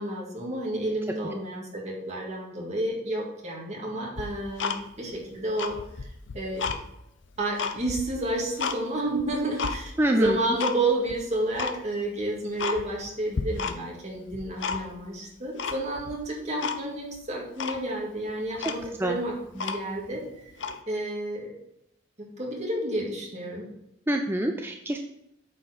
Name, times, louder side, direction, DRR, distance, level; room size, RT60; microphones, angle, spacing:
voice 1, 0.0-6.1 6.3-6.7 7.4-20.5 20.9-21.5 22.2-23.7, right 1 dB, 35° right, -2 dB, 1.9 m, -31 dB
Tick-tock, 4.2-5.2 5.5-6.8 7.2-8.8 9.2-9.8 10.3-10.8 11.1-11.2 11.6-11.8 12.2-12.3 12.6-13.1 13.3-14.0 14.3-15.1 15.6-16.2 16.6-16.8 17.2-17.3 17.6-17.8 18.3-18.4 18.6-20.1 20.5-20.8, left 5 dB, 80° left, 0.6 m, -32 dB
voice 2, 10.0-10.4 19.0-19.2 24.1-25.0, right 1 dB, 10° right, 3 dB, 0.4 m, -25 dB
8.9 x 4.4 x 5.0 m, 0.82 s
head